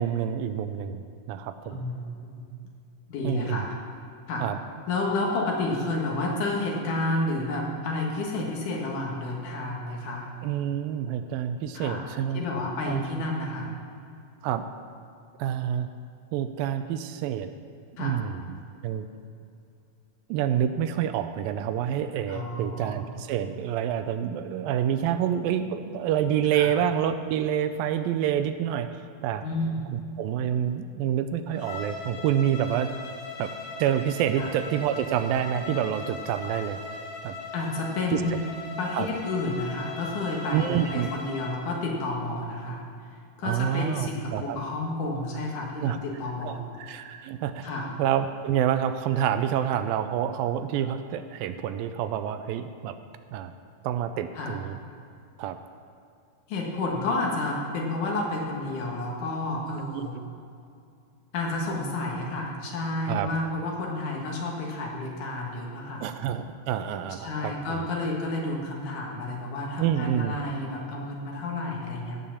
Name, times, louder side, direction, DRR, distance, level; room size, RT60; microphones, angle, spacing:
voice 1, 0.0-1.8 3.2-3.7 4.4-4.6 10.4-12.4 12.9-13.0 14.4-14.6 15.4-15.9 16.3-17.5 18.0-19.1 20.3-28.9 29.2-29.5 29.9-32.9 33.4-33.5 33.8-36.8 37.2-37.4 38.1-38.4 38.9-39.1 40.5-41.1 43.4-44.6 45.8-46.0 46.4-47.7 48.0-53.0 53.3-53.5 53.8-54.8 55.4-55.6 59.9-60.1 63.1-63.3 66.0-67.8 69.8-70.4, right 9 dB, 85° right, 10 dB, 2.3 m, -28 dB
voice 2, 1.6-2.4 3.1-3.7 4.3-4.4 4.9-10.3 11.7-12.1 12.3-13.7 18.0-18.2 22.3-23.0 26.5-26.7 29.4-29.9 34.4-34.5 37.5-38.3 38.8-42.8 43.4-46.7 47.6-47.9 54.3-54.6 56.5-60.2 61.3-66.1 67.2-72.2, left 2 dB, 65° left, -1 dB, 2.9 m, -30 dB
Bowed string instrument, 31.5-41.6, left 3 dB, 85° left, 3.3 m, -39 dB
16.5 x 5.7 x 7.2 m, 2.4 s
omnidirectional pair, 4.1 m